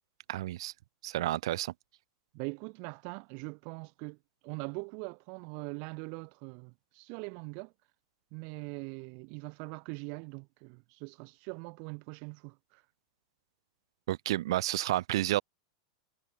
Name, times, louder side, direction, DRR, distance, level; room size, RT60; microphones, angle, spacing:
voice 1, 0.3-0.7 1.0-1.7 14.1-15.4, right 15 dB, 70° right, 1.0 m, -30 dB
voice 2, 2.3-4.2 4.4-7.7 8.3-12.8, right 39 dB, 45° right, 1.1 m, -42 dB
supercardioid pair, 160°, 3 cm